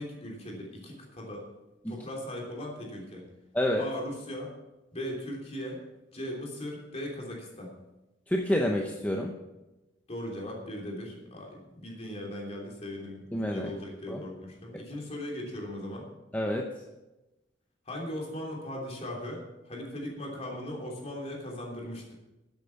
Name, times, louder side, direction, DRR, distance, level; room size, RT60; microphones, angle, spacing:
voice 1, 0.0-1.5 1.9-3.3 3.8-4.5 4.9-5.8 6.1-7.7 10.1-16.1 17.8-22.1, left 1 dB, 35° left, -1 dB, 3.2 m, -38 dB
voice 2, 8.3-9.3 13.3-13.7 14.1-14.2 16.3-16.7, left 1 dB, 10° left, 1 dB, 0.8 m, -28 dB
12.5 x 8.3 x 5.9 m, 1.0 s
head